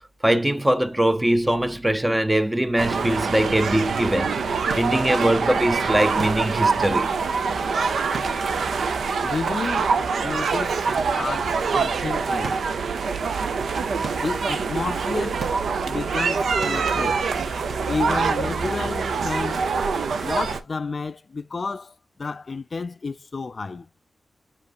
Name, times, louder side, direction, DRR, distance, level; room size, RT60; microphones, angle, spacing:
voice 1, 0.2-7.2, right 1 dB, 10° right, 0.6 m, -22 dB
sound 1, 2.8-20.6, right 5 dB, 80° right, 0.7 m, -25 dB
voice 2, 9.2-10.8 11.2-12.6 14.1-15.5 15.9-17.3 17.9-19.7 20.2-23.9, left 4 dB, 40° left, 0.3 m, -31 dB
sound 2, 12.4-19.3, right 3 dB, 50° right, 2.0 m, -43 dB
7.0 x 5.3 x 2.5 m
wide cardioid pair, 120°, 0 cm